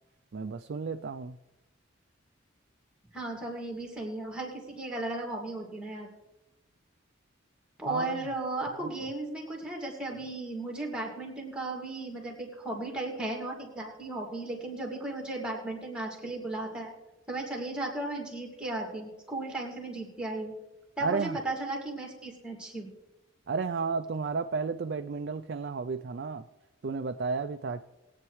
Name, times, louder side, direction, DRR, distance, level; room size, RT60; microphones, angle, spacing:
voice 1, 0.3-1.4 7.9-8.3 8.8-9.1 21.0-21.4 23.5-26.5 26.8-27.8, right 4 dB, 55° right, 7 dB, 0.4 m, -33 dB
voice 2, 3.1-6.1 7.8-16.9 17.3-20.5 21.0-22.9, right 2 dB, 5° right, 0 dB, 2.3 m, -35 dB
21.0 x 8.8 x 3.2 m, 0.99 s
head